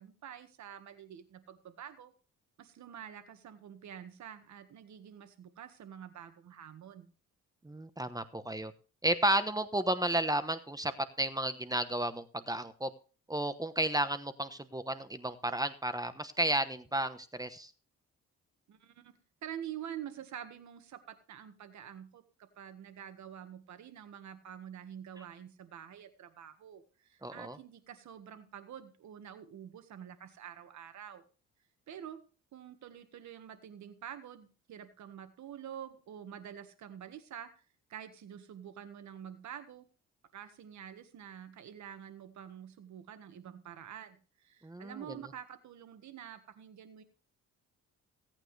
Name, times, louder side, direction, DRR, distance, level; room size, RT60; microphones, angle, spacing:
voice 1, 0.0-2.1 2.6-7.1 18.7-31.2 31.9-32.2 32.5-37.6 37.9-39.9 40.3-47.0, right 9 dB, 70° right, 9 dB, 1.7 m, -47 dB
voice 2, 7.6-8.7 9.0-10.9 11.2-12.9 13.3-17.7 27.2-27.6 44.6-45.2, right 1 dB, 10° right, 11 dB, 1.0 m, -32 dB
17.0 x 9.0 x 3.3 m, 0.37 s
cardioid pair, 90°, 30 cm